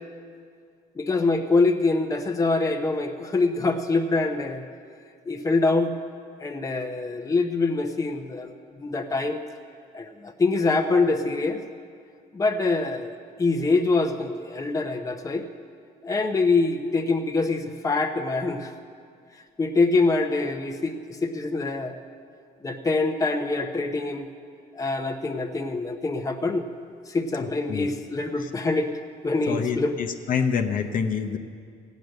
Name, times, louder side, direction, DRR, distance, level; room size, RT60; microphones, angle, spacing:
voice 1, 1.0-4.6 5.3-5.9 6.4-8.5 8.8-9.4 9.9-11.6 12.3-15.4 16.0-18.7 19.6-22.0 22.6-24.3 24.7-26.7 27.1-28.9 29.2-30.0, left 3 dB, 20° left, 4 dB, 0.9 m, -24 dB
voice 2, 29.5-31.4, left 6 dB, 55° left, 6 dB, 0.9 m, -26 dB
15.5 x 9.4 x 6.6 m, 2.2 s
cardioid pair, 110°, 17 cm